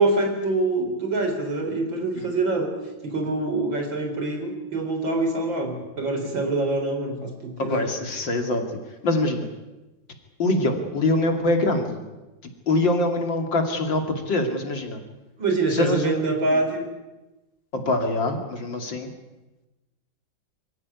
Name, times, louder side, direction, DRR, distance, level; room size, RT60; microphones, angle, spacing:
voice 1, 0.0-2.7 3.0-7.9 15.4-16.9, right 2 dB, 75° right, 4 dB, 4.7 m, -25 dB
voice 2, 7.6-8.6 9.0-9.5 10.4-12.0 12.7-15.0 15.7-16.2 17.7-19.1, left 2 dB, 70° left, 5 dB, 3.3 m, -24 dB
24.5 x 15.0 x 9.7 m, 1.1 s
omnidirectional pair, 2.1 m